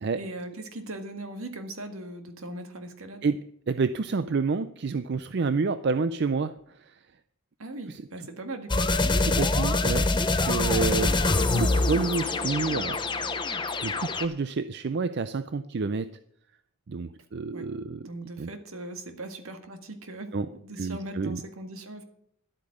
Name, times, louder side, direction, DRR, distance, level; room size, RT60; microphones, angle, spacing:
voice 1, 0.2-3.3 7.6-8.9 17.5-17.7 18.0-20.3 20.6-22.0, right 1 dB, 75° right, 7 dB, 1.7 m, -39 dB
voice 2, 3.7-6.5 7.9-8.0 9.2-13.0 13.8-16.1 16.9-18.1 18.4-18.5 20.3-20.5 20.8-21.4, right 4 dB, 50° right, 12 dB, 0.4 m, -29 dB
sound 1, 8.7-14.2, left 2 dB, 20° left, 0.8 m, -25 dB
11.5 x 8.5 x 6.4 m, 0.71 s
head